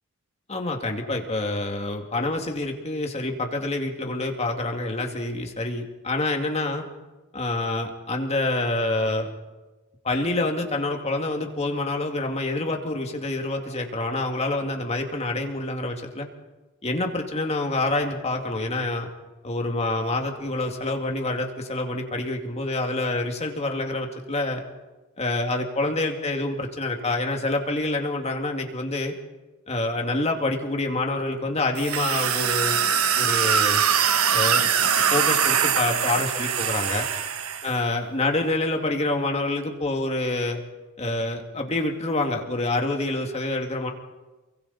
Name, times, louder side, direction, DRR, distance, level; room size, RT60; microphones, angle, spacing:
voice 1, 0.5-6.8 7.3-9.3 10.0-16.3 16.8-19.1 19.4-24.6 25.2-29.1 29.7-32.8 33.2-33.8 34.3-34.6 35.0-37.1 37.6-40.6 41.0-43.9, left 2 dB, 30° left, 3 dB, 2.4 m, -27 dB
sound 1, 31.8-37.7, right 7 dB, 75° right, 1.3 m, -22 dB
28.5 x 23.5 x 4.3 m, 1.2 s
head